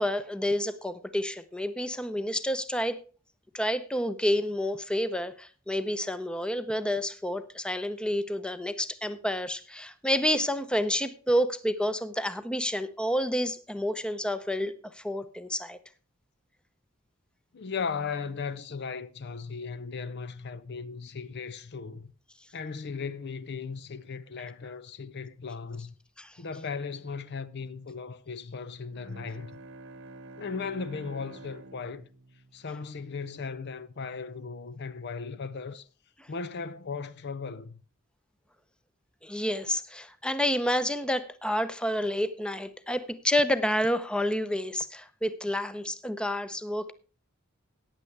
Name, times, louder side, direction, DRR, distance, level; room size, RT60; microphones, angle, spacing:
voice 1, 0.0-3.0 3.5-15.8 26.2-26.3 39.2-46.9, equal, 5° left, 0.7 m, -29 dB
voice 2, 17.5-22.1 22.5-25.9 26.4-29.6 30.4-32.1 32.5-35.9 36.3-37.8, left 5 dB, 55° left, 0.6 m, -37 dB
Bowed string instrument, 28.9-33.4, right 2 dB, 65° right, 1.1 m, -48 dB
15.0 x 9.9 x 3.3 m
head